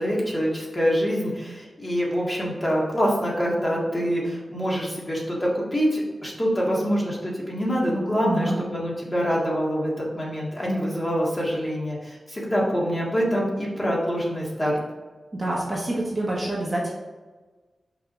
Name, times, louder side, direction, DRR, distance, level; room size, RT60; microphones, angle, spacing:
voice 1, 0.0-14.8, equal, 20° left, -4 dB, 1.8 m, -25 dB
voice 2, 8.2-8.6 15.3-16.9, right 1 dB, 20° right, -4 dB, 1.2 m, -27 dB
5.8 x 4.7 x 4.6 m, 1.3 s
wide cardioid pair, 160°, 0 cm